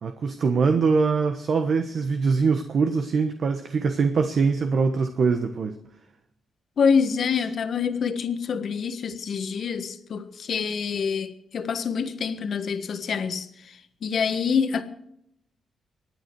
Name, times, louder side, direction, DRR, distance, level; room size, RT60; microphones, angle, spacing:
voice 1, 0.0-5.8, right 5 dB, 60° right, 1.2 m, -23 dB
voice 2, 6.8-14.8, left 6 dB, 60° left, 1.4 m, -26 dB
24.5 x 9.5 x 4.7 m
cardioid pair, 70°, 0 cm